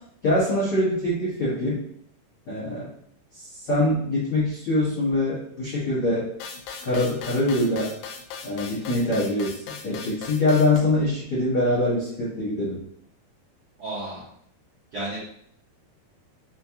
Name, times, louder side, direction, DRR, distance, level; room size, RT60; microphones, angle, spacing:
voice 1, 0.2-1.8 2.5-2.9 3.3-6.3 6.8-7.9 8.4-12.8, left 1 dB, 75° left, -10 dB, 1.3 m, -24 dB
sound 1, 6.4-10.8, left 6 dB, 90° left, 2.0 m, -38 dB
voice 2, 13.8-14.2 14.9-15.2, right 1 dB, 85° right, -9 dB, 1.3 m, -32 dB
6.4 x 2.4 x 2.8 m, 0.67 s
omnidirectional pair, 4.7 m